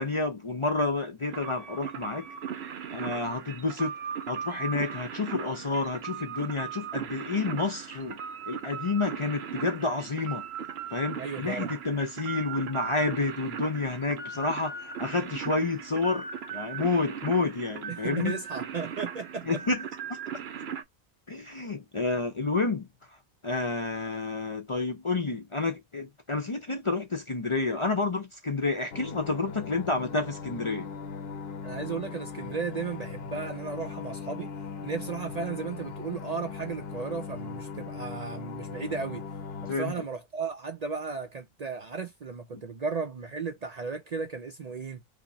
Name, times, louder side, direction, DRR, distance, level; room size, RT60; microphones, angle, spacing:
voice 1, 0.0-2.3 2.9-3.9 4.3-8.2 8.5-10.5 10.9-18.4 19.4-19.9 21.3-22.9 23.4-30.9 39.7-39.9, left 3 dB, 35° left, 0.6 m, -29 dB
sound 1, 1.3-20.8, right 7 dB, 70° right, 1.0 m, -38 dB
voice 2, 11.2-11.7 14.4-14.5 17.9-19.6 31.6-34.5 34.8-39.2 39.6-45.0, right 5 dB, 45° right, 0.6 m, -35 dB
sound 2, 28.9-39.8, left 5 dB, 65° left, 0.9 m, -39 dB
5.0 x 2.1 x 2.7 m
omnidirectional pair, 1.1 m